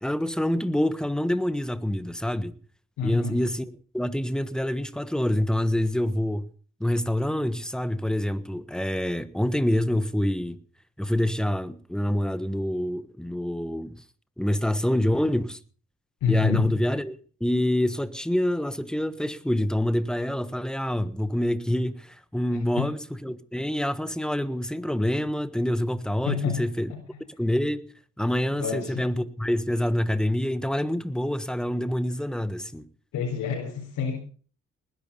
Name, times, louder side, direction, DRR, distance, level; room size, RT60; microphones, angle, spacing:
voice 1, 0.0-2.6 3.0-6.4 6.8-10.6 11.0-14.0 14.4-15.6 16.3-26.9 27.4-27.8 28.2-32.8, left 1 dB, ahead, 1.3 m, -26 dB
voice 2, 3.0-3.4 16.2-16.6 22.5-22.8 26.2-26.6 26.9-27.0 28.5-29.0 33.1-34.1, left 6 dB, 80° left, 4.4 m, -28 dB
20.0 x 11.0 x 5.3 m
cardioid pair, 90°, 30 cm